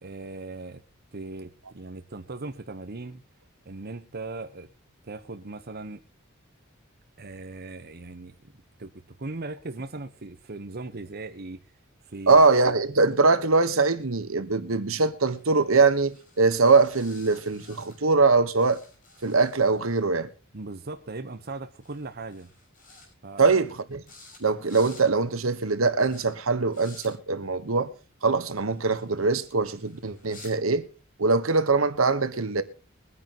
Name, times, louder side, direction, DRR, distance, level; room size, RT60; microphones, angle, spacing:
voice 1, 0.0-0.8 1.1-3.2 3.6-4.7 5.0-6.0 7.2-8.4 8.8-8.9 9.2-11.6 12.0-12.4 20.5-22.5 23.2-23.5, right 3 dB, 50° right, 1.0 m, -38 dB
voice 2, 12.3-18.8 19.2-20.3 23.4-24.0 24.4-27.9 28.2-30.9 31.2-32.6, right 4 dB, 75° right, 1.2 m, -22 dB
sound 1, 15.2-18.3 18.6-20.1 21.4-21.6 21.8-22.1 22.3-23.1 23.4-23.7 24.1-24.4 24.6-25.0 25.5-25.7 26.1-26.2 26.7-27.1 28.3-30.5, left 3 dB, 45° left, 5.7 m, -53 dB
23.0 x 9.8 x 3.0 m
head